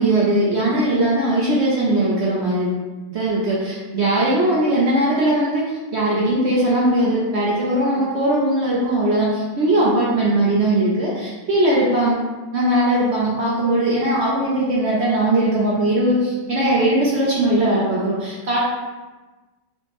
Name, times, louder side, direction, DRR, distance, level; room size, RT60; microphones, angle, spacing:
voice 1, 0.0-2.7 3.1-5.6 5.9-12.2 12.5-18.6, right 1 dB, 80° right, -5 dB, 0.6 m, -19 dB
4.5 x 2.1 x 2.9 m, 1.2 s
omnidirectional pair, 1.9 m